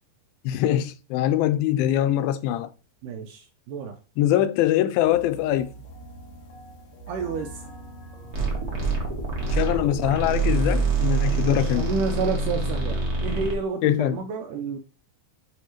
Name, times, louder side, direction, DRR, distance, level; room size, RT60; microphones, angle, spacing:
voice 1, 0.5-2.7 4.2-5.7 9.5-11.8 13.8-14.2, left 12 dB, 90° left, 2.4 m, -23 dB
voice 2, 3.0-4.0 7.1-7.6 11.4-14.8, right 5 dB, 80° right, 2.0 m, -30 dB
sound 1, 5.0-12.3, equal, 65° left, 1.9 m, -43 dB
sound 2, 8.3-13.5, right 3 dB, 60° right, 0.9 m, -25 dB
9.5 x 3.4 x 3.0 m
omnidirectional pair, 4.2 m